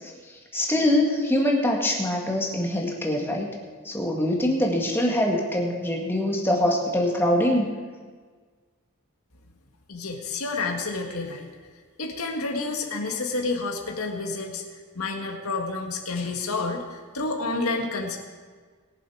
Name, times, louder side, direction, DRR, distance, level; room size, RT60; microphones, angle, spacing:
voice 1, 0.5-3.5 3.9-7.7, left 1 dB, 10° left, -1 dB, 1.8 m, -23 dB
voice 2, 9.9-11.5 12.0-14.6 14.9-18.2, left 3 dB, 80° left, 2 dB, 1.8 m, -29 dB
21.5 x 7.5 x 4.8 m, 1.5 s
head